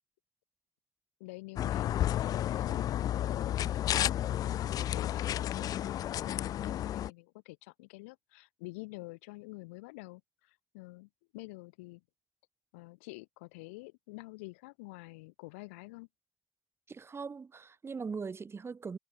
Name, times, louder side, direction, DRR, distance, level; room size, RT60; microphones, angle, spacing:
voice 1, 1.2-12.0 12.7-16.1, left 25 dB, 85° left, 2.7 m, -48 dB
sound 1, 1.6-7.1, left 12 dB, 60° left, 0.6 m, -32 dB
voice 2, 16.9-19.0, right 5 dB, 35° right, 2.3 m, -40 dB
hypercardioid pair, 55°, 7 cm